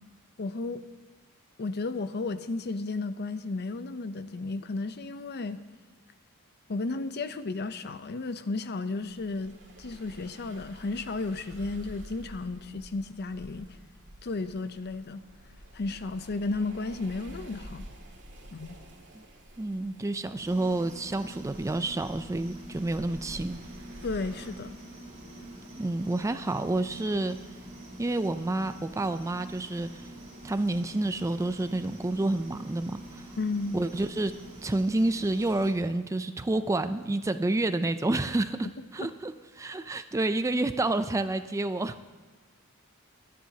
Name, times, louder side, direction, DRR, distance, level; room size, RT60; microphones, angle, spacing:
voice 1, 0.4-0.8 1.6-5.6 6.7-13.7 14.2-15.2 15.7-17.9 18.5-18.8 24.0-24.8 33.4-33.8 39.0-39.1, left 3 dB, 50° left, 11 dB, 0.6 m, -33 dB
sound 1, 9.0-24.5, right 1 dB, 55° right, 2.2 m, -49 dB
voice 2, 19.6-23.6 25.8-27.4 28.0-30.1 30.4-33.3 33.7-34.3 34.6-38.7 38.9-42.0, right 2 dB, 15° right, 11 dB, 0.4 m, -29 dB
sound 2, 20.4-35.7, right 1 dB, 35° right, 4.3 m, -46 dB
24.0 x 10.0 x 2.8 m, 1.4 s
head